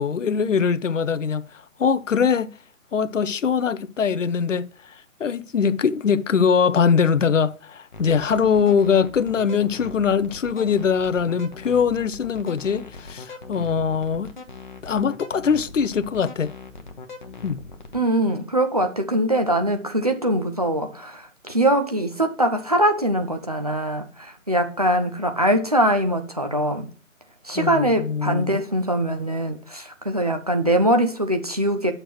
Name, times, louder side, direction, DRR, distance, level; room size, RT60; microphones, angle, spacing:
voice 1, 0.0-1.5 1.8-2.5 2.9-14.3 14.8-16.5 17.4-17.6 27.6-28.6, left 6 dB, 65° left, 0.6 m, -22 dB
sound 1, 7.9-18.0, left 3 dB, 35° left, 0.8 m, -40 dB
voice 2, 17.9-26.9 27.4-31.9, right 1 dB, 30° right, 0.5 m, -22 dB
9.7 x 6.5 x 3.1 m
figure-of-eight pair, 145°, 42 cm